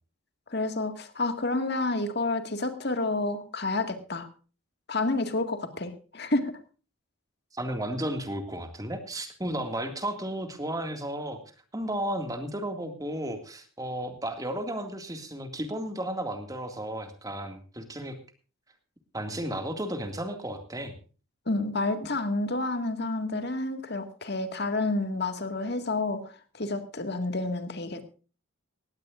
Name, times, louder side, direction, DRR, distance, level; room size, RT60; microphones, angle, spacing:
voice 1, 0.5-4.3 4.9-6.5 21.5-26.3 26.6-28.2, left 2 dB, 50° left, 8 dB, 1.9 m, -29 dB
voice 2, 7.5-11.4 11.7-18.2 19.1-20.9, right 1 dB, 15° right, 6 dB, 2.1 m, -33 dB
18.5 x 16.5 x 2.5 m, 0.36 s
head